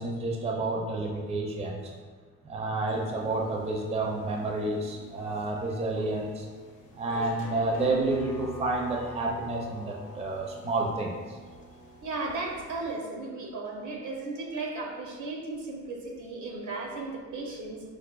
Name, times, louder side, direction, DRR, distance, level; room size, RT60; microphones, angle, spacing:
voice 1, 0.0-1.9 2.4-6.5 6.9-11.4, right 2 dB, 20° right, 0 dB, 0.4 m, -30 dB
sound 1, 2.9-13.0, equal, 75° left, 0.6 m, -45 dB
voice 2, 12.0-17.8, right 3 dB, 75° right, 0 dB, 0.7 m, -35 dB
4.7 x 2.2 x 2.3 m, 1.5 s
cardioid pair, 90°, 30 cm